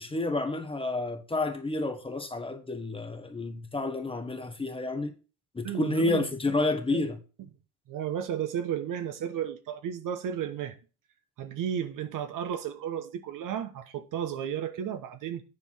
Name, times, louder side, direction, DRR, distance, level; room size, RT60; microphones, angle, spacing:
voice 1, 0.0-5.1 5.5-7.2, left 2 dB, 10° left, 1.2 m, -30 dB
voice 2, 5.6-6.3 6.9-7.0 7.9-10.8 11.4-15.4, right 9 dB, 45° right, 1.2 m, -33 dB
10.0 x 4.5 x 5.6 m
hypercardioid pair, 90°, 47 cm